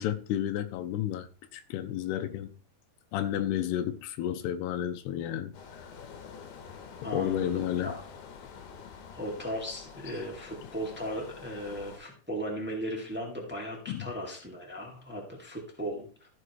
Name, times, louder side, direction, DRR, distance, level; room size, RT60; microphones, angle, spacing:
voice 1, 0.0-2.5 3.1-5.9 7.1-7.9 13.9-14.1, left 11 dB, 90° left, 2.7 m, -32 dB
sound 1, 5.5-12.0, left 6 dB, 65° left, 2.4 m, -47 dB
voice 2, 7.0-8.0 9.1-16.1, equal, 5° right, 0.9 m, -37 dB
14.5 x 6.7 x 3.1 m
omnidirectional pair, 4.7 m